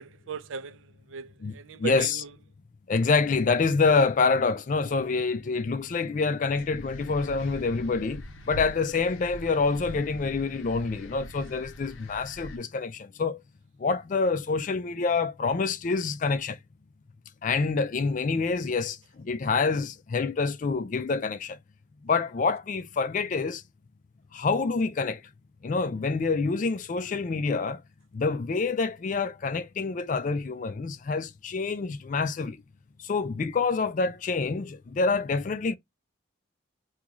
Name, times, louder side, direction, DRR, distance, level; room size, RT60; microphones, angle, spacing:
voice 1, 0.0-2.3, right 8 dB, 80° right, 0.4 m, -38 dB
voice 2, 1.8-2.2 2.9-8.2 8.5-13.4 13.8-16.6 17.4-21.6 22.0-23.6 24.3-25.2 25.6-27.8 28.1-32.6 33.0-35.8, left 4 dB, 40° left, 0.3 m, -27 dB
sound 1, 6.5-12.6, left 1 dB, 90° left, 0.8 m, -42 dB
3.0 x 2.3 x 3.6 m
head